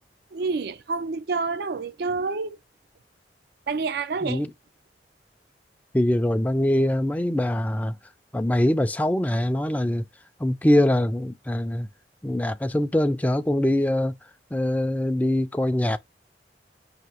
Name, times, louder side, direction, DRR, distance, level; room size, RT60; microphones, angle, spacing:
voice 1, 0.3-2.6 3.7-4.4, right 4 dB, 60° right, 0.4 m, -28 dB
voice 2, 5.9-8.0 8.3-10.0 10.4-11.9 12.2-14.2 14.5-16.0, left 1 dB, 10° left, 0.4 m, -23 dB
5.8 x 2.7 x 3.0 m
head